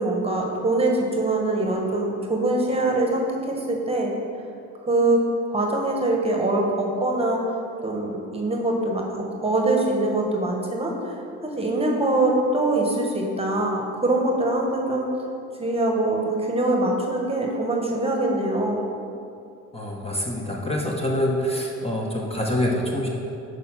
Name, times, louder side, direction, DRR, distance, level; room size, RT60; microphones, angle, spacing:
voice 1, 0.0-4.1 4.9-5.2 5.5-7.4 7.8-11.1 11.4-15.1 15.6-18.8, right 2 dB, 20° right, 0 dB, 1.2 m, -23 dB
voice 2, 19.7-23.1, left 1 dB, 20° left, -2 dB, 0.9 m, -25 dB
6.6 x 4.8 x 5.7 m, 2.6 s
cardioid pair, 90°, 30 cm